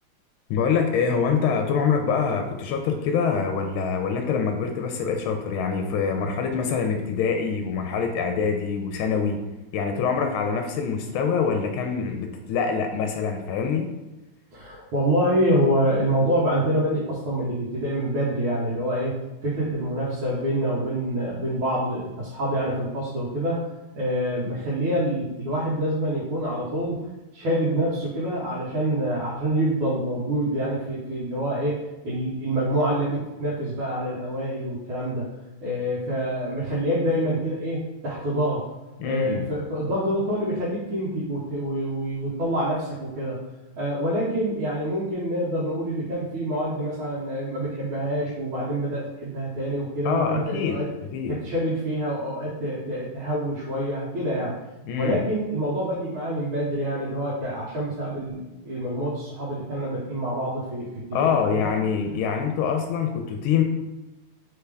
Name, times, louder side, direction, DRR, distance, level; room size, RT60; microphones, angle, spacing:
voice 1, 0.5-9.4 9.7-13.9 39.0-39.5 50.0-50.8 51.1-51.4 54.9-55.2 61.1-63.6, left 6 dB, 90° left, 4 dB, 1.4 m, -25 dB
voice 2, 14.5-19.1 19.4-23.7 23.9-27.0 27.3-31.8 32.0-35.3 35.6-38.7 39.0-43.4 43.7-50.9 51.3-54.6 55.0-61.7 62.2-62.3, right 1 dB, 85° right, -8 dB, 1.8 m, -26 dB
4.0 x 3.4 x 3.3 m, 1.0 s
omnidirectional pair, 2.2 m